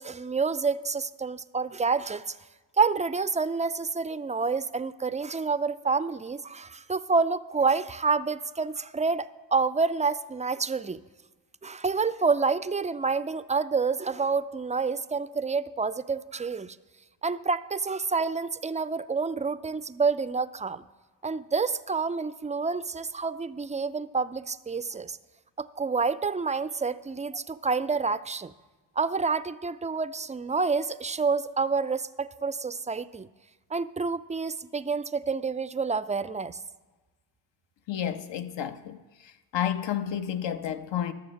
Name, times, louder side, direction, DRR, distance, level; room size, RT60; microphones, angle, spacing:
voice 1, 0.0-2.4 2.8-11.0 11.6-16.8 17.2-20.8 21.2-25.2 25.6-28.5 29.0-33.3 33.7-36.6, right 4 dB, 15° right, 0.4 m, -28 dB
voice 2, 37.9-39.0 39.5-41.1, left 10 dB, 65° left, 1.0 m, -30 dB
12.0 x 6.9 x 6.4 m
supercardioid pair, 50°, 48 cm